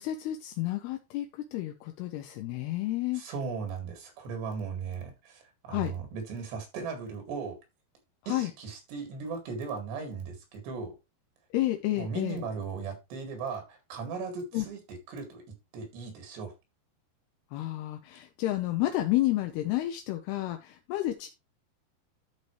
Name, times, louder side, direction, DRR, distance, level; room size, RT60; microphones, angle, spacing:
voice 1, 0.0-3.2 5.7-5.9 8.3-8.5 11.5-12.4 14.5-14.7 17.5-21.3, left 15 dB, 80° left, 6 dB, 2.7 m, -30 dB
voice 2, 3.1-7.6 8.3-11.0 11.9-15.4 15.7-16.5, right 5 dB, 80° right, 5 dB, 4.4 m, -37 dB
12.0 x 5.4 x 3.2 m, 0.24 s
omnidirectional pair, 4.8 m